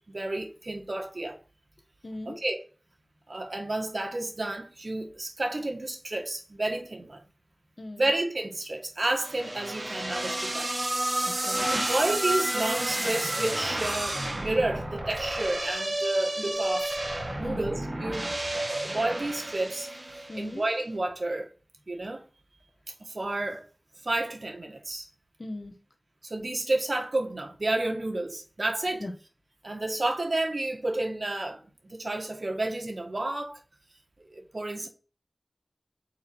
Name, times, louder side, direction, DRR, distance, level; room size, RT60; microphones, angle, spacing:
voice 1, 0.1-1.4 2.3-2.6 3.3-7.2 8.0-10.7 11.7-17.0 17.4-18.3 18.8-19.9 20.4-21.5 21.9-22.2 23.0-23.6 24.0-25.1 26.2-29.0 29.6-33.6 34.3-34.9, right 2 dB, 65° right, 1.6 m, -31 dB
voice 2, 2.0-2.4 7.8-8.1 11.2-11.7 17.4-17.7 20.3-20.6 25.4-25.7 29.0-29.1, left 2 dB, 60° left, 1.2 m, -38 dB
sound 1, 9.2-20.5, right 1 dB, 45° right, 1.6 m, -31 dB
4.7 x 4.4 x 6.0 m
wide cardioid pair, 45°, 0 cm